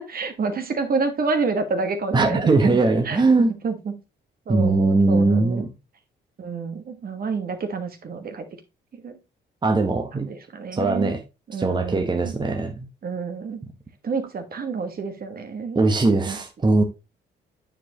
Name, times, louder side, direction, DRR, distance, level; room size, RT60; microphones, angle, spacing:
voice 1, 0.0-2.8 3.0-3.9 4.5-5.6 6.4-8.4 8.9-9.2 10.1-11.1 11.5-12.3 13.0-13.6 14.0-15.8 16.3-16.4, right 4 dB, 50° right, 1.4 m, -28 dB
voice 2, 2.1-3.5 4.5-5.7 9.6-10.3 10.7-11.2 11.6-12.9 15.7-16.8, right 3 dB, 20° right, 1.1 m, -20 dB
9.1 x 4.8 x 2.9 m
cardioid pair, 90°, 20 cm